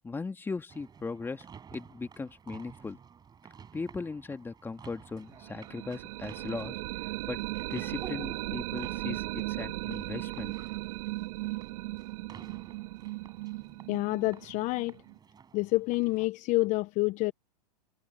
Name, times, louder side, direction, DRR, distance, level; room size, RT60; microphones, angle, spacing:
voice 1, 0.0-1.5 1.7-3.0 3.7-7.4 7.7-10.5, left 4 dB, 10° left, 2.2 m, -38 dB
sound 1, 0.7-16.3, right 7 dB, 20° right, 7.2 m, -53 dB
sound 2, 5.4-15.2, right 20 dB, 55° right, 2.4 m, -37 dB
voice 2, 13.9-15.0 15.5-17.3, left 22 dB, 35° left, 0.9 m, -28 dB
hypercardioid pair, 120°, 21 cm